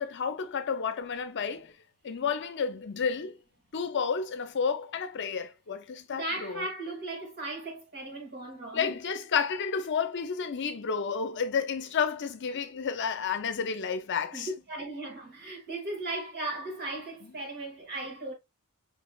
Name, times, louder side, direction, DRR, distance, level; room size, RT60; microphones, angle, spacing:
voice 1, 0.0-1.7 2.0-3.4 3.7-6.6 8.7-14.5, left 6 dB, 55° left, 0.6 m, -31 dB
voice 2, 6.1-9.0 14.3-18.3, right 2 dB, 45° right, 1.9 m, -37 dB
5.1 x 3.2 x 2.3 m
head